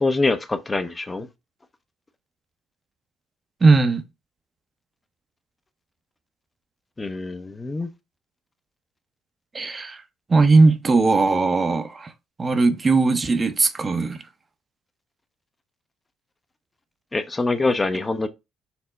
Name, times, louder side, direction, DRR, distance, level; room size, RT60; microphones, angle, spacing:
voice 1, 0.0-1.3 7.0-7.9 17.1-18.3, left 3 dB, 20° left, 0.5 m, -24 dB
voice 2, 3.6-4.0 9.5-10.0 10.3-12.1 12.4-14.2, right 3 dB, 30° right, 0.6 m, -18 dB
4.3 x 2.0 x 4.0 m
supercardioid pair, 75°, 0 cm